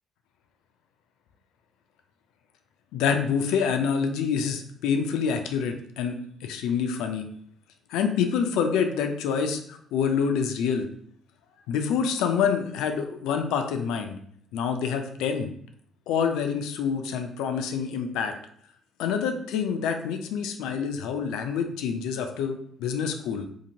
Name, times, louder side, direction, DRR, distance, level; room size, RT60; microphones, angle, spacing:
voice 1, 2.9-7.2 7.9-10.9 11.7-14.2 14.5-15.5 16.1-18.3 19.0-23.5, left 6 dB, 70° left, 6 dB, 0.3 m, -27 dB
2.8 x 2.5 x 2.7 m, 0.65 s
hypercardioid pair, 50°, 0 cm